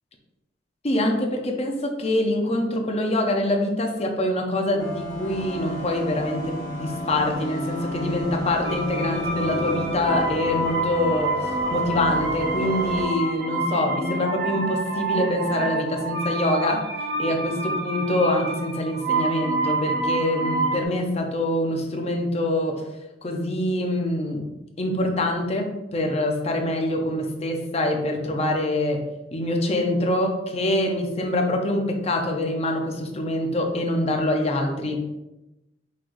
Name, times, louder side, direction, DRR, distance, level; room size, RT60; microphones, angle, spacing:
voice 1, 0.8-11.4 11.7-16.9 17.2-22.9 23.2-24.5 24.8-29.0 29.3-35.0, left 1 dB, 35° left, 2 dB, 0.6 m, -25 dB
sound 1, 4.8-13.0, equal, 90° left, 1.4 m, -32 dB
sound 2, 8.6-20.8, right 2 dB, 70° right, 0.8 m, -28 dB
5.7 x 3.1 x 2.5 m, 0.96 s
head